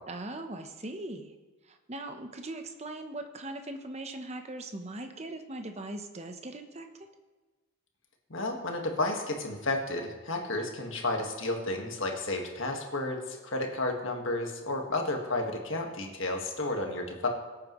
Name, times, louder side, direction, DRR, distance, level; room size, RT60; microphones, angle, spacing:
voice 1, 0.1-1.3 1.6-7.1, right 2 dB, 30° right, 6 dB, 0.8 m, -40 dB
voice 2, 8.3-17.3, left 2 dB, 65° left, 2 dB, 1.6 m, -32 dB
17.5 x 8.7 x 3.1 m, 1.2 s
head